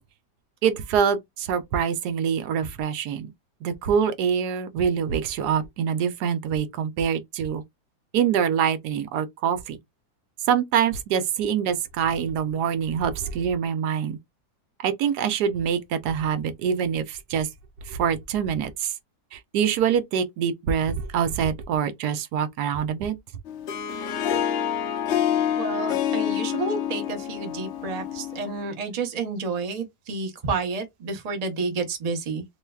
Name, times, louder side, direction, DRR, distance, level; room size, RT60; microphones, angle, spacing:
voice 1, 0.6-3.3 3.6-7.6 8.1-9.8 10.5-14.2 14.8-17.5 17.9-18.9 19.3-23.2, right 7 dB, 80° right, 1.2 m, -25 dB
Harp, 23.5-28.7, left 9 dB, 70° left, 0.7 m, -27 dB
voice 2, 25.6-32.4, right 4 dB, 35° right, 0.7 m, -30 dB
3.2 x 3.1 x 2.3 m
omnidirectional pair, 1.7 m